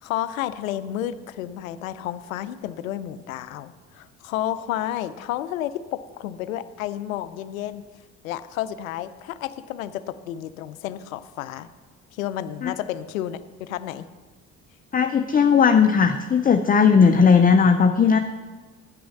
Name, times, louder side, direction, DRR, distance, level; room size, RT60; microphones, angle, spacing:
voice 1, 0.0-7.8 8.2-11.7 12.1-14.1, left 12 dB, 85° left, 14 dB, 0.5 m, -31 dB
voice 2, 14.9-18.2, left 6 dB, 20° left, 7 dB, 0.6 m, -17 dB
9.2 x 6.2 x 7.2 m, 1.3 s
hypercardioid pair, 55°, 40 cm